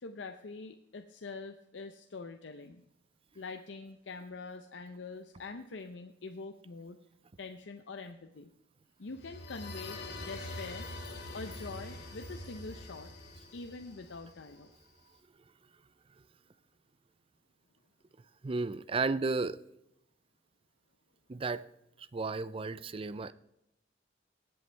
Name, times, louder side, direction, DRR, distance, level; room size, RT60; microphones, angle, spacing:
voice 1, 0.0-2.8 3.3-7.0 7.4-8.5 9.0-10.9 11.3-13.1 13.5-14.7, left 3 dB, 80° left, 0.6 m, -44 dB
sound 1, 9.1-14.8, left 2 dB, 65° left, 2.4 m, -44 dB
voice 2, 18.4-19.6 21.3-21.6 22.1-23.3, right 3 dB, 30° right, 0.4 m, -33 dB
19.0 x 7.9 x 3.3 m
head